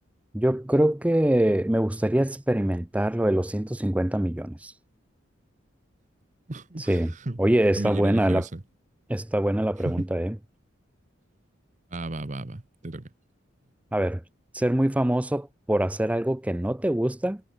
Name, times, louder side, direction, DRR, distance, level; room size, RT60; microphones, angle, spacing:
voice 1, 0.3-4.7 6.8-7.1 7.4-8.4 9.1-10.3 13.9-14.2 14.5-17.4, right 1 dB, 5° right, 0.4 m, -24 dB
voice 2, 6.5-7.4 7.8-8.6 9.8-10.1 11.9-13.1, right 2 dB, 40° right, 1.0 m, -34 dB
head